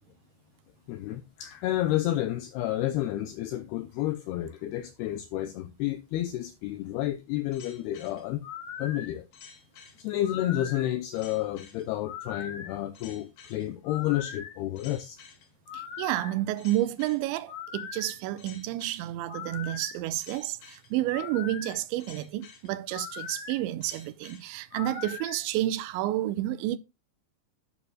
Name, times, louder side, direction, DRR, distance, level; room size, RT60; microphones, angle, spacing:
voice 1, 0.9-8.4 8.8-9.3 10.0-15.2, left 13 dB, 85° left, 2.3 m, -30 dB
sound 1, 7.5-25.4, left 7 dB, 60° left, 3.6 m, -42 dB
voice 2, 15.7-26.8, right 14 dB, 85° right, 3.0 m, -30 dB
11.0 x 9.6 x 2.3 m
omnidirectional pair, 5.3 m